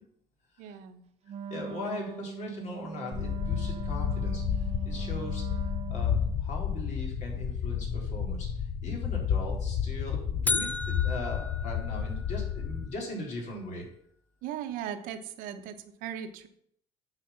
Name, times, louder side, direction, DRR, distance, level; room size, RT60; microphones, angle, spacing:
voice 1, 0.6-1.0 5.0-5.1 14.4-15.7 16.0-16.5, right 9 dB, 85° right, 8 dB, 1.1 m, -38 dB
Wind instrument woodwind instrument, 1.3-6.4, right 6 dB, 50° right, 0.7 m, -41 dB
voice 2, 1.5-6.1 6.4-8.5 8.8-13.9, left 2 dB, 60° left, -2 dB, 3.8 m, -39 dB
sound 1, 3.1-12.9, left 7 dB, 40° left, 0.7 m, -31 dB
sound 2, 10.5-12.6, left 4 dB, 10° left, 0.3 m, -33 dB
9.0 x 5.1 x 7.0 m, 0.69 s
cardioid pair, 130°, 14 cm